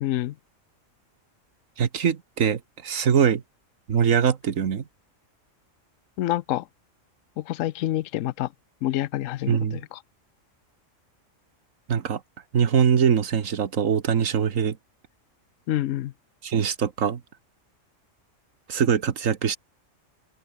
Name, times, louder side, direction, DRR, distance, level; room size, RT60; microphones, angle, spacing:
voice 1, 0.0-0.3 6.2-6.7 7.4-8.5 8.8-10.0 15.7-16.1, left 14 dB, 80° left, 1.0 m, -27 dB
voice 2, 1.8-3.4 3.9-4.8 9.5-9.8 11.9-12.2 12.5-14.8 16.4-17.2 18.7-19.6, right 7 dB, 85° right, 1.7 m, -22 dB
open air
omnidirectional pair, 1.3 m